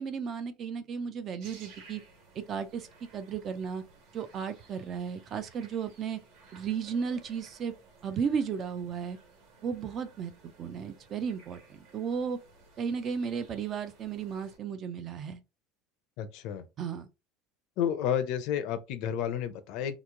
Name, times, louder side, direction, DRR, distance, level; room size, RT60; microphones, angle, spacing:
voice 1, 0.0-2.0 2.3-2.9 3.1-3.8 4.1-6.2 6.5-7.7 8.0-9.2 9.6-10.3 10.6-12.4 12.8-15.4 16.8-17.1, right 6 dB, 25° right, 0.3 m, -34 dB
sound 1, 1.4-14.6, right 4 dB, 55° right, 1.3 m, -57 dB
voice 2, 16.2-16.7 17.8-20.0, left 9 dB, 50° left, 0.5 m, -31 dB
3.0 x 2.4 x 3.6 m
cardioid pair, 175°, 0 cm